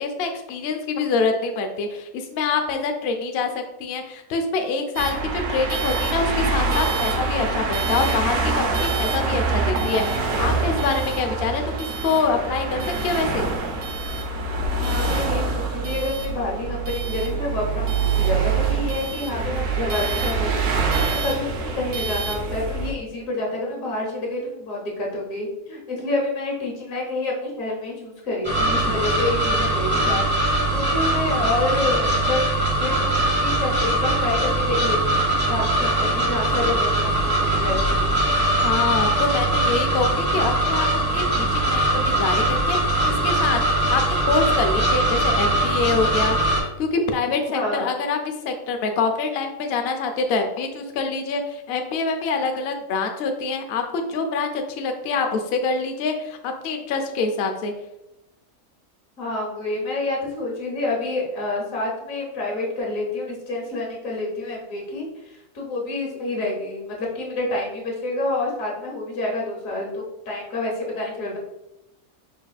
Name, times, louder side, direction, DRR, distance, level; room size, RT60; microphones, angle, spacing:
voice 1, 0.0-13.5 38.6-40.9 41.1-48.2 48.4-57.7, left 4 dB, 90° left, 5 dB, 0.5 m, -25 dB
sound 1, 5.0-22.9, right 4 dB, 75° right, 1.1 m, -25 dB
voice 2, 14.7-20.7 21.2-30.3 30.7-32.4 32.8-38.1 47.5-47.9 59.2-71.4, left 2 dB, 60° left, -2 dB, 1.4 m, -28 dB
sound 2, 28.4-46.6, right 1 dB, 10° right, 1.1 m, -21 dB
4.8 x 3.2 x 2.3 m, 0.90 s
omnidirectional pair, 1.6 m